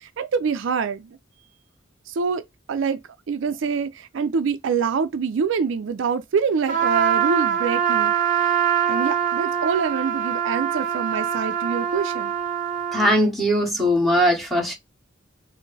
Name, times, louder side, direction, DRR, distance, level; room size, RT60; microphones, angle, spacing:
voice 1, 0.0-1.2 2.1-2.4 2.7-3.0 3.3-8.6 8.9-12.3, right 5 dB, 75° right, 0.4 m, -25 dB
Trumpet, 6.7-13.1, right 9 dB, 45° right, 0.7 m, -23 dB
voice 2, 12.9-14.7, equal, ahead, 1.2 m, -20 dB
4.2 x 2.0 x 3.3 m
head